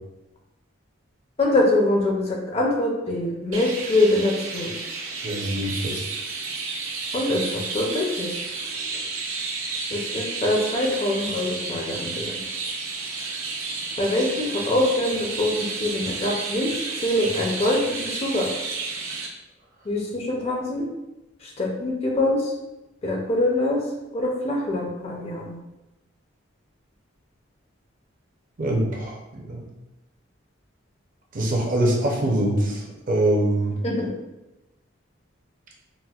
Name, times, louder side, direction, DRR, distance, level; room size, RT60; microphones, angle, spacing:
voice 1, 1.4-4.7 7.1-8.3 9.9-12.4 14.0-18.5 19.9-20.9 21.4-22.5 23.0-23.8 24.1-25.6 33.8-34.1, left 1 dB, 30° left, 0 dB, 0.4 m, -24 dB
Chirp tweet, 3.5-19.3, right 4 dB, 90° right, 0.5 m, -31 dB
voice 2, 5.2-6.1 28.6-29.7 31.3-33.8, right 1 dB, 45° right, -1 dB, 0.5 m, -24 dB
4.1 x 2.0 x 2.3 m, 0.99 s
head